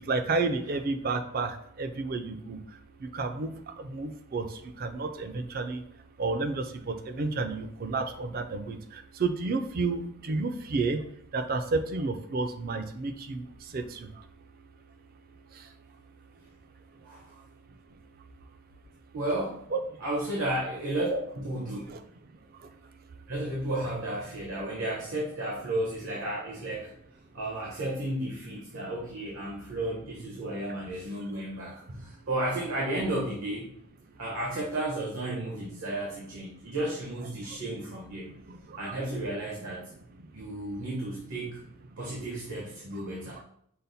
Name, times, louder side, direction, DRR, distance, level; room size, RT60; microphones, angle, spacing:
voice 1, 0.0-5.8 6.2-11.0 11.3-14.3 15.5-15.7 16.9-17.4 19.7-19.8 21.9-22.0 22.5-22.7 31.1-31.2 37.4-37.6 38.5-39.0 40.2-40.3 42.9-43.0 43.3-43.4, right 3 dB, 45° right, 8 dB, 0.4 m, -32 dB
voice 2, 19.1-19.6 20.0-21.9 23.3-26.9 27.3-33.7 34.2-38.3 38.8-39.9 40.3-41.6 42.0-43.4, right 1 dB, 80° right, -4 dB, 1.1 m, -33 dB
5.5 x 2.1 x 4.0 m, 0.69 s
head